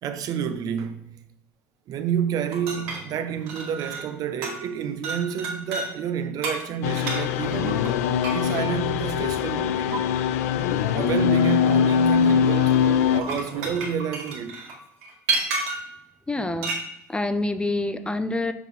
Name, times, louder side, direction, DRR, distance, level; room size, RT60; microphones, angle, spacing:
voice 1, 0.0-1.2 1.9-7.9 8.3-10.0 10.9-14.6, right 8 dB, 50° right, 0.7 m, -29 dB
sound 1, 2.5-4.2 4.4-4.7 5.0-5.9 6.4-8.6 9.9-10.0 13.0-15.9 16.6-16.9, right 3 dB, 70° right, 1.8 m, -31 dB
sound 2, 6.8-13.2, left 8 dB, 75° left, 0.4 m, -22 dB
voice 2, 16.3-16.7 17.1-18.5, left 2 dB, 10° left, 0.6 m, -26 dB
6.1 x 5.3 x 4.2 m
hypercardioid pair, 70°, 8 cm